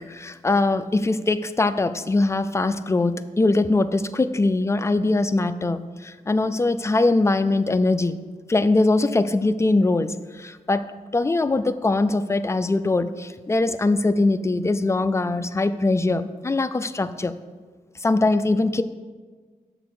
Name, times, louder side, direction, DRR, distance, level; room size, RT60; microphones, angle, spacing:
voice 1, 0.0-8.2 8.5-10.9 11.1-17.3 18.0-18.8, left 2 dB, 20° left, 12 dB, 0.3 m, -22 dB
6.6 x 4.1 x 6.1 m, 1.4 s
wide cardioid pair, 75°, 14 cm